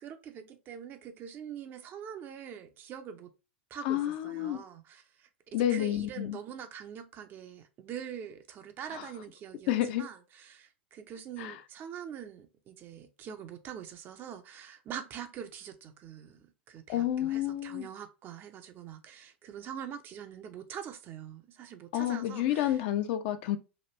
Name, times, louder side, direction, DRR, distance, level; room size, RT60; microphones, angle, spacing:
voice 1, 0.0-3.3 3.7-22.8, right 8 dB, 35° right, 0.5 m, -44 dB
voice 2, 3.8-4.6 5.5-6.4 8.9-9.1 9.7-10.0 11.4-11.6 16.9-17.9 21.9-23.6, left 12 dB, 50° left, 0.5 m, -30 dB
3.0 x 2.5 x 2.9 m
figure-of-eight pair, 90°, 6 cm